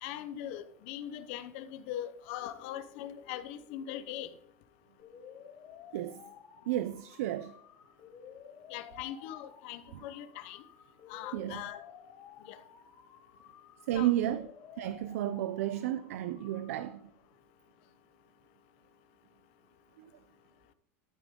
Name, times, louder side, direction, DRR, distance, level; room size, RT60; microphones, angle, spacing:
voice 1, 0.0-4.3 8.7-10.6 11.1-11.8 12.5-12.6 13.9-14.1, left 11 dB, 50° left, 0.9 m, -41 dB
sound 1, 5.0-17.0, left 8 dB, 30° left, 3.6 m, -53 dB
voice 2, 5.9-6.2 6.7-7.5 11.3-11.6 13.9-14.5 14.8-17.1 20.0-20.1, right 13 dB, 70° right, 0.5 m, -32 dB
12.0 x 8.8 x 3.7 m
supercardioid pair, 180°, 8 cm